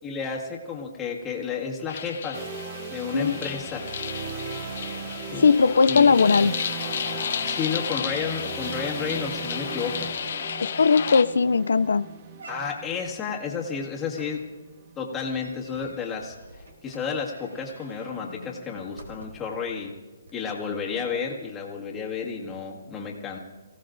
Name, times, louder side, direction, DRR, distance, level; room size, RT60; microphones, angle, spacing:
voice 1, 0.0-2.4 2.9-3.9 5.3-5.5 5.9-6.1 7.4-10.1 12.5-14.4 15.0-16.4 16.8-19.9 20.3-23.4, left 6 dB, 10° left, -3 dB, 1.8 m, -31 dB
sound 1, 1.9-11.2, left 7 dB, 55° left, 0.8 m, -32 dB
sound 2, 2.3-16.2, right 7 dB, 35° right, 0.6 m, -39 dB
voice 2, 5.4-6.7 10.6-12.1, left 5 dB, 85° left, 12 dB, 0.4 m, -19 dB
sound 3, 11.1-11.4 11.8-11.9 12.4-13.1 14.1-19.6 20.2-20.3, right 1 dB, 85° right, 3.5 m, -47 dB
26.0 x 16.5 x 2.6 m, 1.3 s
hypercardioid pair, 165°, 0 cm